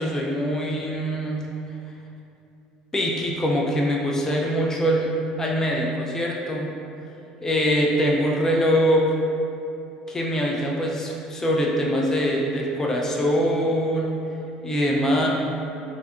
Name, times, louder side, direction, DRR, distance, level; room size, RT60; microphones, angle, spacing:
voice 1, 0.0-1.4 2.9-6.7 7.4-9.1 10.1-14.1 14.6-15.3, equal, 15° left, -2 dB, 0.3 m, -23 dB
2.6 x 2.4 x 2.2 m, 2.7 s
supercardioid pair, 95°, 3 cm